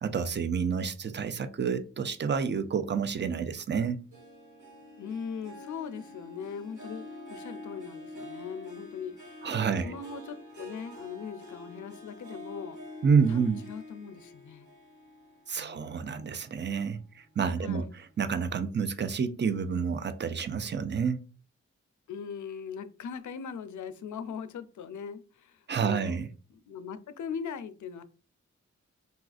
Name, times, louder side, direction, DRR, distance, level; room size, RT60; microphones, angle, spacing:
voice 1, 0.0-4.0 9.4-9.9 13.0-13.6 15.5-21.2 25.7-26.3, right 6 dB, 35° right, 0.5 m, -29 dB
Harp, 4.1-16.8 17.3-17.7 18.1-18.2, left 1 dB, 75° right, 1.0 m, -46 dB
voice 2, 5.0-9.5 9.8-12.8 13.3-14.7 15.6-15.8 17.6-17.9 22.1-26.2 26.5-28.0, left 6 dB, 75° left, 0.5 m, -40 dB
4.0 x 2.4 x 2.4 m
cardioid pair, 50°, 30 cm